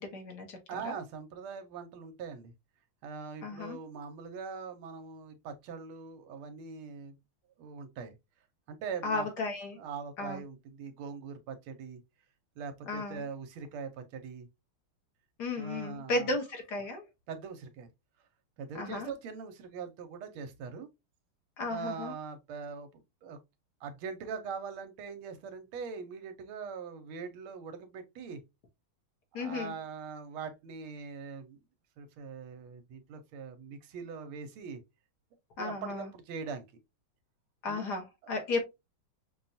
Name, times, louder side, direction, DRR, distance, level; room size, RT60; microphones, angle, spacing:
voice 1, 0.0-0.9 3.4-3.8 9.0-9.8 10.2-10.4 12.9-13.2 15.4-17.0 18.8-19.1 21.6-22.1 29.3-29.7 35.6-36.1 37.6-38.6, left 3 dB, 60° left, 1.4 m, -34 dB
voice 2, 0.7-2.5 3.0-7.2 7.6-8.1 8.7-9.3 9.7-12.0 12.6-14.5 15.6-16.3 17.3-17.9 18.6-20.9 21.7-23.4 23.8-28.4 29.3-31.6 32.0-34.8 35.6-36.6 37.6-37.8 38.2-38.4, right 5 dB, 80° right, 1.6 m, -42 dB
5.7 x 2.3 x 2.6 m
omnidirectional pair, 2.3 m